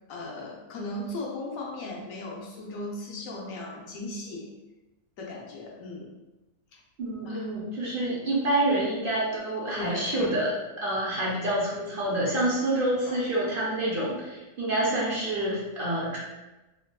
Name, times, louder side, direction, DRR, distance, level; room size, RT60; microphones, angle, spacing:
voice 1, 0.1-4.5 5.2-6.1 6.7-6.8 7.3-7.5 9.7-10.3 13.1-13.2, left 2 dB, 65° left, -2 dB, 1.0 m, -37 dB
voice 2, 7.0-10.5 10.8-16.2, right 1 dB, 60° right, -5 dB, 0.5 m, -27 dB
3.5 x 2.6 x 2.2 m, 1.1 s
omnidirectional pair, 1.7 m